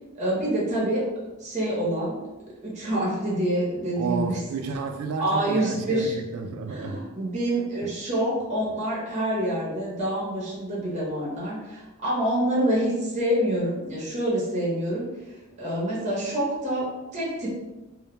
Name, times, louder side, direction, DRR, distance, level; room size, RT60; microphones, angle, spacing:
voice 1, 0.1-1.1 1.4-2.2 2.6-4.4 5.2-6.2 6.7-17.5, right 1 dB, 35° right, -6 dB, 0.7 m, -27 dB
voice 2, 3.9-7.0 7.8-7.9, right 5 dB, 85° right, 5 dB, 0.3 m, -31 dB
2.1 x 2.1 x 2.9 m, 1.1 s
head